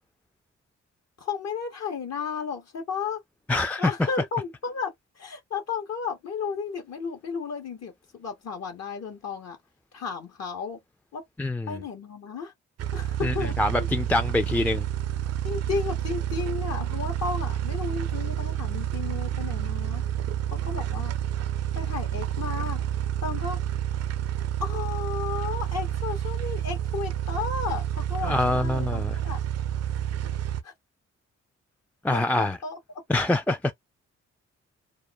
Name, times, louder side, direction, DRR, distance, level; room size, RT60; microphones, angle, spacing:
voice 1, 1.2-3.2 3.8-9.6 9.9-10.8 11.1-11.2 11.7-12.5 12.9-13.6 15.4-20.1 20.5-21.2 21.7-22.8 23.2-23.6 24.6-29.4 30.6-30.7 32.1-32.8, left 5 dB, 60° left, 0.8 m, -33 dB
voice 2, 3.5-3.9 11.4-11.8 13.2-14.8 28.2-29.2 32.0-32.6 33.1-33.7, left 2 dB, 5° left, 0.3 m, -25 dB
sound 1, 12.8-30.6, right 11 dB, 60° right, 0.5 m, -29 dB
2.3 x 2.1 x 2.6 m
supercardioid pair, 55°, 29 cm